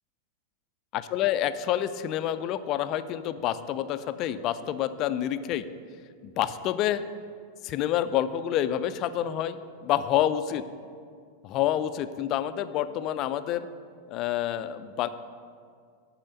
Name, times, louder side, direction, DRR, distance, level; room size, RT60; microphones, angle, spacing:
voice 1, 1.1-5.7 6.2-7.1 7.6-10.7 11.4-13.7 14.1-15.1, left 11 dB, 40° left, 12 dB, 0.3 m, -28 dB
8.5 x 4.9 x 6.4 m, 2.1 s
figure-of-eight pair, 90°, 0 cm